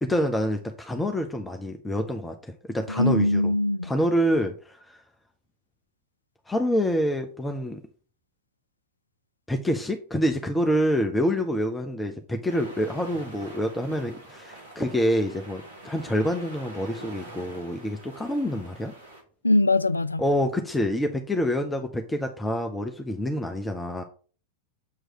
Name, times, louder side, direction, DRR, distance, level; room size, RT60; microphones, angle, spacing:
voice 1, 0.0-3.5 3.8-5.0 6.5-7.8 9.5-18.9 20.2-24.0, equal, 10° left, 0.8 m, -27 dB
voice 2, 2.9-3.9 19.4-20.2, left 2 dB, 80° left, 0.3 m, -22 dB
sound 1, 12.5-19.2, right 2 dB, 75° right, 2.2 m, -45 dB
7.6 x 3.2 x 6.2 m
figure-of-eight pair, 90°, 0 cm